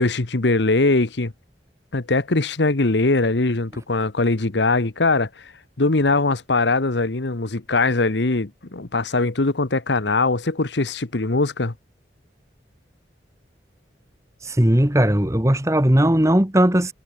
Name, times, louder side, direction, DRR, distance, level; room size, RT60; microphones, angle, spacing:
voice 1, 0.0-1.3 1.9-5.5 5.8-11.7, left 3 dB, 80° left, 1.2 m, -21 dB
voice 2, 14.4-16.9, right 1 dB, 15° right, 1.4 m, -18 dB
head